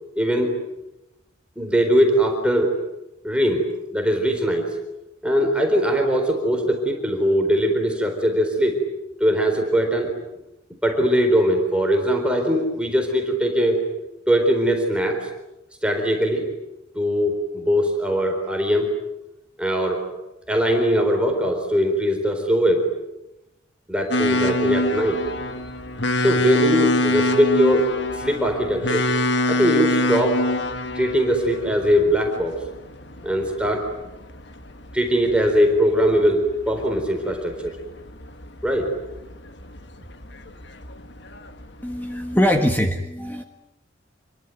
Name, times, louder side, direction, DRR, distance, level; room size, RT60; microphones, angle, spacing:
voice 1, 0.1-0.5 1.6-2.7 3.2-4.7 5.2-8.8 9.2-10.1 10.8-13.8 14.3-15.3 15.8-16.4 17.0-19.0 19.6-20.0 20.5-22.9 23.9-25.7 26.2-29.1 29.5-30.4 30.9-32.6 33.2-33.9 34.9-37.8 38.6-38.9, equal, 5° right, 3 dB, 4.1 m, -21 dB
sound 1, 24.1-42.6, left 1 dB, 60° left, 1.6 m, -26 dB
voice 2, 41.8-43.4, equal, 10° left, 4 dB, 1.6 m, -22 dB
28.0 x 23.0 x 9.4 m, 0.93 s
head